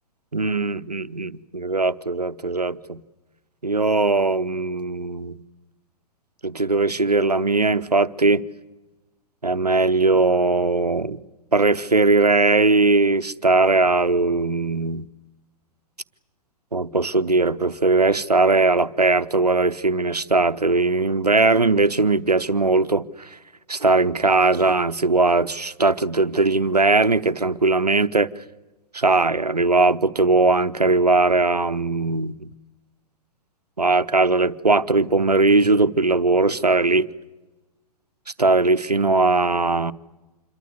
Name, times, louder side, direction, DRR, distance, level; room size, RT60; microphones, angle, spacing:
voice 1, 0.3-3.0 3.6-5.4 6.4-8.4 9.4-11.2 11.5-15.1 16.7-23.3 23.7-28.3 28.9-32.5 33.8-37.1 38.4-39.9, right 3 dB, 85° right, 0.9 m, -19 dB
27.0 x 22.5 x 8.2 m
figure-of-eight pair, 110°, 20 cm